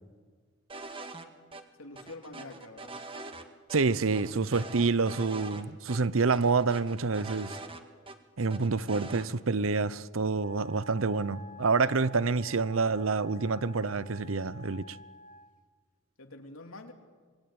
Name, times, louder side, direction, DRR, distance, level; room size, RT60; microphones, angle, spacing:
sound 1, 0.7-1.3 1.5-1.6 2.0-3.4 3.7-3.8 4.1-5.6 5.9-6.0 6.3-8.2 8.5-9.3, right 3 dB, 25° right, 1.9 m, -43 dB
voice 1, 1.8-3.0 11.8-12.1 16.2-16.9, left 2 dB, 80° left, 3.0 m, -46 dB
voice 2, 3.7-7.6 8.4-15.0, right 4 dB, 70° right, 0.8 m, -27 dB
Wind instrument woodwind instrument, 10.4-15.6, equal, 40° left, 1.5 m, -49 dB
26.5 x 21.5 x 8.8 m
head